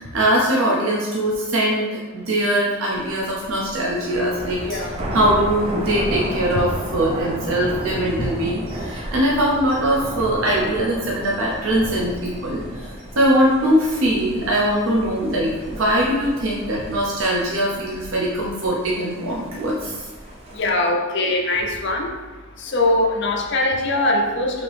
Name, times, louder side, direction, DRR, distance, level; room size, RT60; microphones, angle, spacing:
voice 1, 0.0-4.8 5.1-20.0, right 1 dB, 70° right, -4 dB, 0.7 m, -21 dB
Thunder, 2.9-20.7, right 1 dB, 30° right, 0.6 m, -33 dB
voice 2, 20.6-22.1 22.6-24.6, left 2 dB, 55° left, 1 dB, 0.7 m, -21 dB
5.0 x 2.8 x 3.3 m, 1.3 s
head